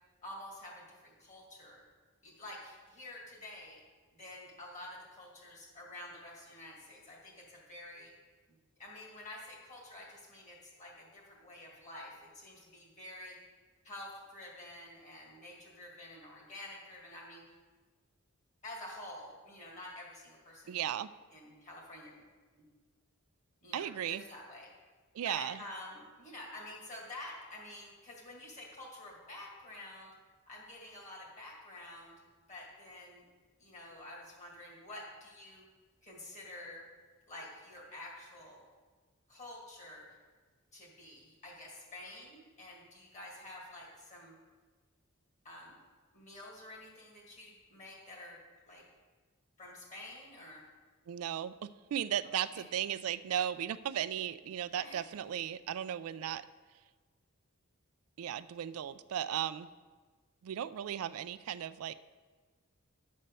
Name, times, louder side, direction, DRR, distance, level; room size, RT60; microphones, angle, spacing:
voice 1, 0.2-1.8 2.2-3.8 4.1-8.1 8.5-13.4 13.8-17.4 18.6-20.8 21.3-22.2 23.6-24.7 25.2-30.1 30.5-32.1 32.5-33.2 33.6-35.7 36.0-36.8 37.3-38.6 39.3-40.2 40.7-44.4 45.4-45.8 46.1-48.8 49.6-50.6 52.5-52.6 54.8-55.0 56.2-56.3, left 1 dB, 35° left, -3 dB, 2.2 m, -49 dB
voice 2, 20.7-21.1 23.7-24.2 25.1-25.6 51.1-56.4 58.2-59.7 60.4-61.9, right 10 dB, 80° right, 14 dB, 0.3 m, -36 dB
10.5 x 4.3 x 6.7 m, 1.4 s
head